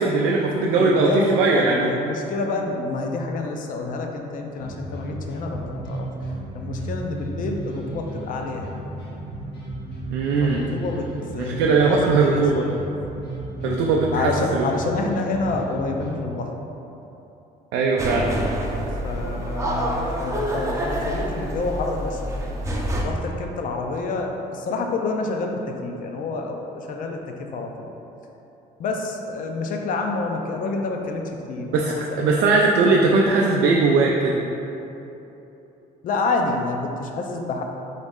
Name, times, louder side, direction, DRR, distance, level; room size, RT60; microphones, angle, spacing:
voice 1, 0.0-1.9 10.1-10.6 11.4-12.6 13.6-14.7 17.7-18.3 31.7-34.4, right 3 dB, 90° right, -2 dB, 0.4 m, -19 dB
voice 2, 0.8-6.1 6.5-8.8 10.4-12.7 14.1-16.5 19.0-22.2 23.0-27.9 28.8-32.5 32.9-33.0 36.0-37.6, left 3 dB, 55° left, 3 dB, 0.5 m, -28 dB
sound 1, 4.5-16.2, right 1 dB, 80° left, 1.1 m, -34 dB
sound 2, 18.0-23.0, right 1 dB, 20° right, 0.5 m, -27 dB
3.9 x 3.1 x 3.6 m, 3.0 s
cardioid pair, 110°, 17 cm